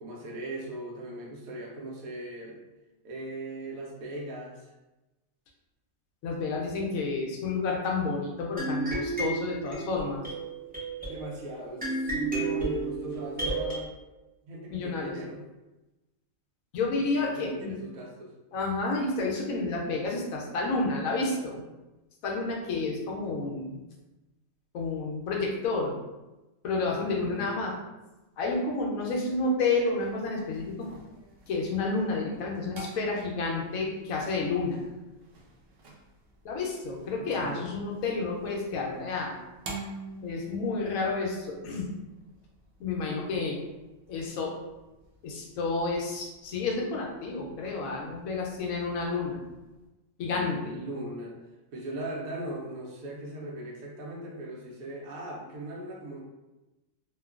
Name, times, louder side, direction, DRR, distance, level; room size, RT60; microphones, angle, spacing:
voice 1, 0.0-2.6 3.0-4.7 6.4-6.5 11.1-13.9 14.4-15.4 17.2-18.3 26.9-27.6 37.2-37.7 50.3-51.4 51.7-56.2, right 1 dB, 90° right, -2 dB, 1.1 m, -39 dB
voice 2, 6.2-10.2 14.7-15.1 16.7-17.7 18.5-21.6 22.2-23.8 24.7-26.0 26.6-27.7 28.4-30.9 31.5-34.8 36.4-39.4 40.2-41.9 42.8-43.6 44.1-44.5 45.2-49.4 50.2-50.8, left 3 dB, 80° left, -1 dB, 1.0 m, -30 dB
sound 1, 8.6-13.8, right 2 dB, 10° right, 0.4 m, -32 dB
sound 2, 30.0-49.9, right 3 dB, 65° right, 0.6 m, -49 dB
2.9 x 2.2 x 2.3 m, 1.0 s
omnidirectional pair, 1.4 m